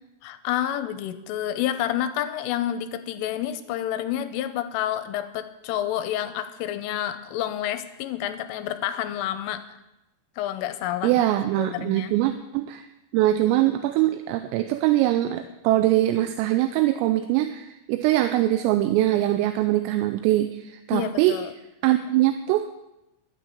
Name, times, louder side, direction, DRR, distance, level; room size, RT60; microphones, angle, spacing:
voice 1, 0.2-9.6 10.4-11.3 11.6-12.1 20.9-21.5, left 11 dB, 80° left, 10 dB, 3.1 m, -29 dB
voice 2, 11.0-12.9 13.1-21.4 21.8-22.7, right 14 dB, 85° right, 8 dB, 3.3 m, -22 dB
12.0 x 9.4 x 8.4 m, 0.93 s
omnidirectional pair, 6.0 m